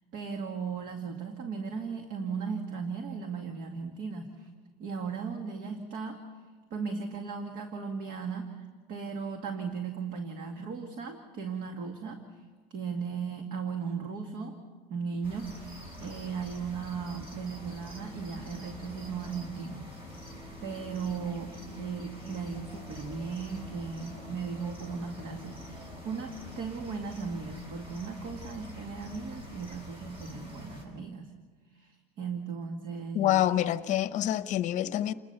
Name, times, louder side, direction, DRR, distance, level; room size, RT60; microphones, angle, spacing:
voice 1, 0.1-4.5 4.8-6.2 6.7-12.4 12.7-14.6 14.9-20.2 20.6-31.3 31.7-33.4, right 5 dB, 50° right, 2.1 m, -37 dB
sound 1, 15.2-30.8, left 1 dB, 30° right, 7.7 m, -46 dB
sound 2, 17.5-26.4, left 3 dB, ahead, 1.9 m, -53 dB
voice 2, 33.1-35.1, left 12 dB, 40° left, 1.0 m, -27 dB
29.0 x 21.0 x 6.8 m
cardioid pair, 145°, 19 cm